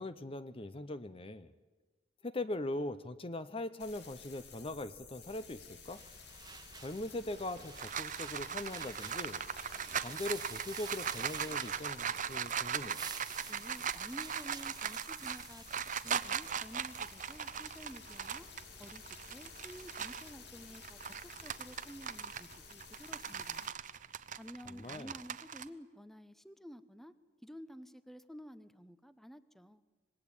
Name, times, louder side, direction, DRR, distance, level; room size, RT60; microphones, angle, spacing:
voice 1, 0.0-1.5 2.2-6.0 6.7-9.4 10.0-13.0 24.7-25.1, left 2 dB, 30° left, 13 dB, 0.8 m, -41 dB
sound 1, 3.8-23.7, left 5 dB, 65° left, 2.9 m, -53 dB
sound 2, 5.9-12.3 12.7-17.3, right 6 dB, 20° right, 1.3 m, -51 dB
sound 3, 7.4-20.3 20.7-25.6, right 8 dB, 45° right, 0.8 m, -39 dB
voice 2, 13.5-18.5 18.8-23.7 24.4-27.1 27.4-29.8, equal, ahead, 13 dB, 0.8 m, -52 dB
25.5 x 20.0 x 8.8 m, 1.3 s
head